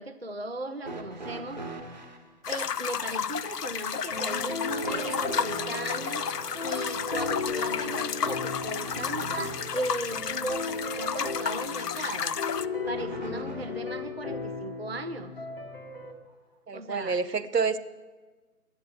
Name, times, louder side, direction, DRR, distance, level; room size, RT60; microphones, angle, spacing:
voice 1, 0.0-1.6 2.5-6.3 6.6-12.4 12.9-15.3 16.7-17.2, right 2 dB, 45° right, 8 dB, 0.4 m, -37 dB
sound 1, 0.8-2.3 4.8-9.9 12.8-13.9 15.1-15.2 16.3-16.4, right 3 dB, 30° right, 1.1 m, -42 dB
sound 2, 2.4-12.7, left 7 dB, 80° left, 0.6 m, -32 dB
sound 3, 4.1-16.1, left 3 dB, 35° left, 1.1 m, -36 dB
voice 2, 16.7-17.8, right 5 dB, 85° right, 13 dB, 0.9 m, -28 dB
12.0 x 8.9 x 7.8 m, 1.3 s
figure-of-eight pair, 155°, 47 cm